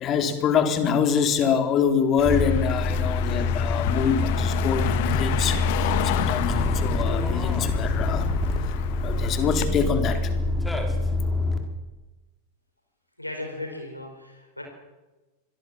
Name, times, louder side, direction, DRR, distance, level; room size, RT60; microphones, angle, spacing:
voice 1, 0.0-8.3 8.7-8.8 9.0-10.3, left 7 dB, 30° left, 7 dB, 3.9 m, -25 dB
Car passing by, 2.2-9.7, left 12 dB, 50° left, 2.0 m, -31 dB
sound 1, 2.2-11.6, left 2 dB, 5° left, 4.5 m, -25 dB
voice 2, 13.2-14.6, left 2 dB, 85° left, 3 dB, 4.5 m, -36 dB
26.5 x 22.0 x 7.5 m, 1.1 s
figure-of-eight pair, 90°, 0 cm